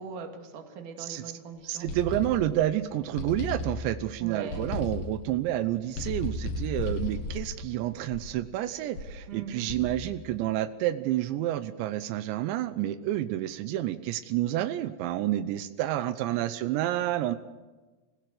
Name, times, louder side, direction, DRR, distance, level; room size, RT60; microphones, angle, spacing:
voice 1, 0.0-1.9 4.2-4.7 9.3-9.7 16.2-16.5, right 5 dB, 50° right, 5 dB, 3.4 m, -41 dB
voice 2, 1.7-17.4, right 13 dB, 85° right, 12 dB, 3.1 m, -29 dB
sound 1, 1.9-2.7 3.2-4.1 4.5-5.3 5.9-8.5 9.0-9.3 9.7-10.2, left 3 dB, 55° left, 2.9 m, -35 dB
25.0 x 16.0 x 7.8 m, 1.3 s
omnidirectional pair, 5.1 m